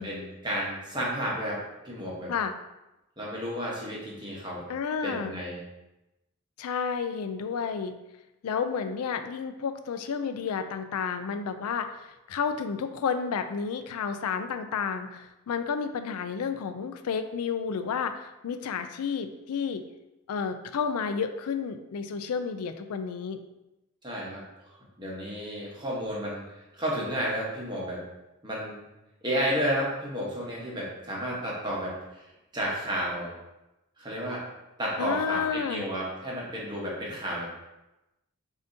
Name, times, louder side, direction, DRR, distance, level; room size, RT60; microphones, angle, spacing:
voice 1, 0.0-2.3 3.2-4.6 5.0-5.6 24.0-24.4 25.0-26.4 26.7-28.0 28.4-28.8 29.2-32.3 32.5-33.3 34.0-34.5 34.8-37.5, equal, 20° right, -5 dB, 1.0 m, -32 dB
voice 2, 4.7-5.3 6.6-7.9 8.4-19.8 20.3-23.4 35.0-35.9, left 6 dB, 90° left, 9 dB, 0.4 m, -31 dB
6.8 x 2.7 x 2.7 m, 0.97 s
head